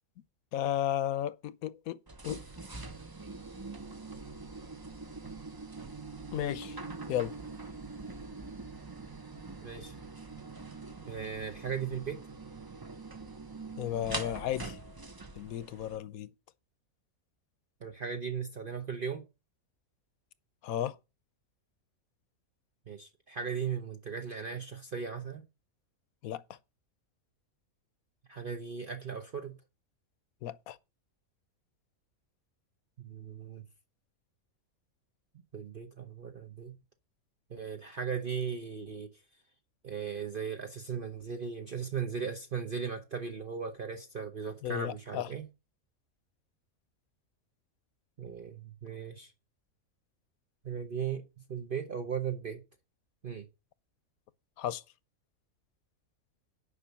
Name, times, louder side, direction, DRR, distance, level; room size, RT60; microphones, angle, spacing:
voice 1, 0.5-2.0 2.2-2.4 6.3-6.8 7.1-7.3 13.8-14.8 15.4-16.3 20.6-20.9 26.2-26.4 30.4-30.8 44.6-45.3 54.6-54.8, left 11 dB, 85° left, 1.2 m, -33 dB
sound 1, 2.1-16.0, right 3 dB, 20° right, 0.7 m, -44 dB
voice 2, 9.6-9.9 11.1-12.2 17.8-19.3 22.9-25.4 28.3-29.6 33.0-33.7 35.5-36.8 37.5-39.1 39.8-45.5 48.2-49.3 50.6-51.2 51.5-52.6 53.2-53.5, right 6 dB, 45° right, 1.1 m, -37 dB
9.8 x 5.6 x 7.1 m
omnidirectional pair, 1.4 m